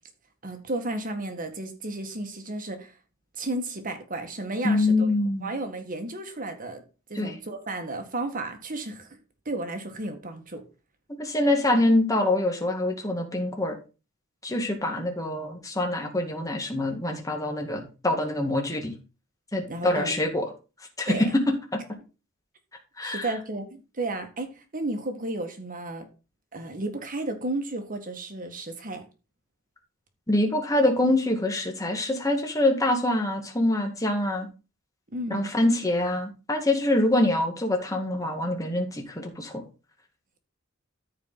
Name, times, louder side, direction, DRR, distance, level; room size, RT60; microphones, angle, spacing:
voice 1, 0.4-3.0 3.3-5.1 5.4-6.8 7.1-9.2 9.5-10.6 19.7-20.1 21.1-21.4 23.0-26.1 26.5-29.0 35.1-35.5, right 2 dB, 40° right, 1.7 m, -33 dB
voice 2, 4.6-5.5 7.2-7.3 11.2-13.8 14.4-19.0 19.5-20.4 21.0-21.3 23.0-23.3 30.3-34.5 35.3-39.6, left 1 dB, 15° left, 2.0 m, -25 dB
13.5 x 4.8 x 4.0 m
head